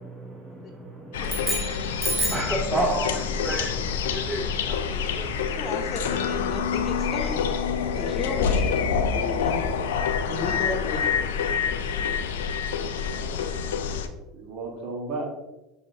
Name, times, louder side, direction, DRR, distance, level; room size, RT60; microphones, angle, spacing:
voice 1, 0.0-1.6 2.3-5.4, right 2 dB, 15° right, -2 dB, 0.7 m, -32 dB
sound 1, 1.1-14.1, left 6 dB, 80° left, 0.3 m, -27 dB
sound 2, 1.2-2.6, right 1 dB, ahead, 1.0 m, -29 dB
voice 2, 2.9-3.8 13.0-13.4 14.3-15.2, right 3 dB, 55° right, -1 dB, 1.4 m, -36 dB
voice 3, 5.6-7.5 7.9-9.7 10.3-11.3, left 3 dB, 40° left, 2 dB, 0.9 m, -33 dB
6.0 x 2.8 x 2.7 m, 1.0 s
hypercardioid pair, 80°, 0 cm